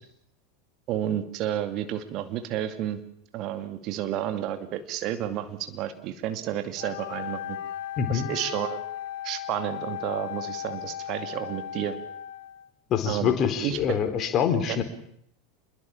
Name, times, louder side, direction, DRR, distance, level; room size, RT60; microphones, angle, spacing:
voice 1, 0.9-3.0 3.3-7.6 8.1-8.8 9.2-12.0 13.1-13.3 13.6-14.0, right 11 dB, 45° right, 8 dB, 2.3 m, -31 dB
Wind instrument woodwind instrument, 6.8-12.7, left 10 dB, 60° left, 1.1 m, -36 dB
voice 2, 8.0-8.3 12.9-14.8, left 8 dB, 35° left, 8 dB, 4.2 m, -25 dB
27.5 x 22.0 x 7.3 m, 0.69 s
figure-of-eight pair, 80°, 0 cm